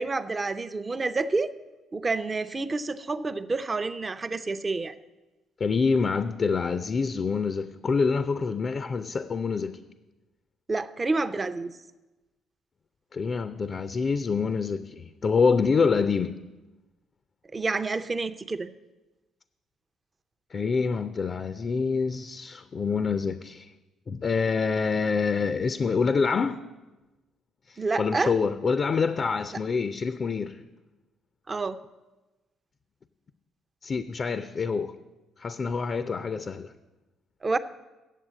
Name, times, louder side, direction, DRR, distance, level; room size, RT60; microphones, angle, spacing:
voice 1, 0.0-1.5 1.9-4.9 10.7-11.7 17.5-18.7 27.8-28.3 31.5-31.8 37.4-37.6, right 3 dB, 30° right, 0.6 m, -28 dB
voice 2, 5.6-9.8 13.1-16.4 20.5-23.7 24.1-26.6 27.7-30.6 33.8-35.0 35.4-36.7, left 5 dB, 45° left, 0.5 m, -26 dB
9.1 x 7.5 x 7.4 m
hypercardioid pair, 45°, 0 cm